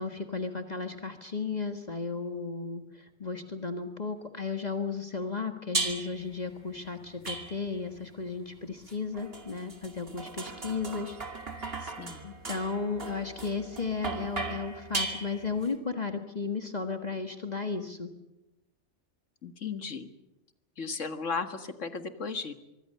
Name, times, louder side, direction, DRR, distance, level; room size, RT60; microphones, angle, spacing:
voice 1, 0.0-11.2 11.6-11.9 12.2-18.1, left 4 dB, 35° left, 6 dB, 1.7 m, -34 dB
sound 1, 5.7-6.3 7.2-7.9 8.9-15.7, right 3 dB, 50° right, 2.8 m, -37 dB
voice 2, 11.8-12.3 19.4-20.1 20.8-22.5, left 4 dB, 85° left, 8 dB, 2.1 m, -35 dB
25.5 x 23.5 x 6.8 m, 0.95 s
omnidirectional pair, 1.2 m